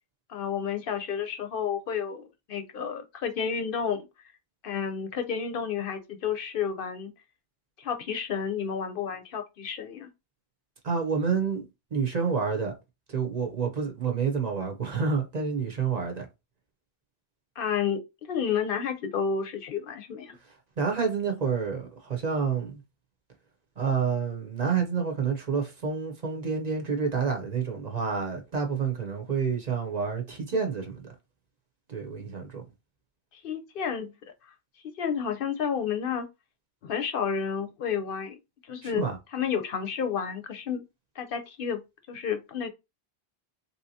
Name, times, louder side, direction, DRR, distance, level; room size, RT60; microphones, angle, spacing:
voice 1, 0.3-4.1 4.6-7.1 7.8-10.1 17.6-20.4 33.3-34.1 35.0-36.3 36.8-38.4 38.7-39.1 39.3-40.8 41.2-41.8 42.1-42.7, left 7 dB, 65° left, 0.7 m, -31 dB
voice 2, 10.8-11.6 11.9-12.7 13.1-16.3 20.8-22.8 23.8-31.0 31.9-32.6 38.8-39.2, right 5 dB, 45° right, 0.8 m, -28 dB
3.4 x 2.8 x 2.7 m
omnidirectional pair, 1.0 m